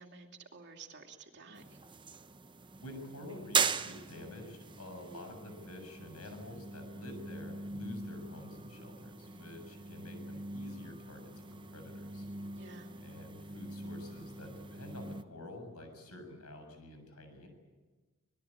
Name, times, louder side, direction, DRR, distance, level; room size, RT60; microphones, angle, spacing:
voice 1, 0.0-1.8 9.7-10.0 12.5-12.9, right 4 dB, 50° right, 3 dB, 2.7 m, -52 dB
sound 1, 1.6-15.2, right 5 dB, 20° right, 0.8 m, -40 dB
voice 2, 2.8-12.3 13.0-17.5, left 1 dB, 85° left, 6 dB, 7.3 m, -49 dB
26.0 x 20.0 x 8.7 m, 1.3 s
head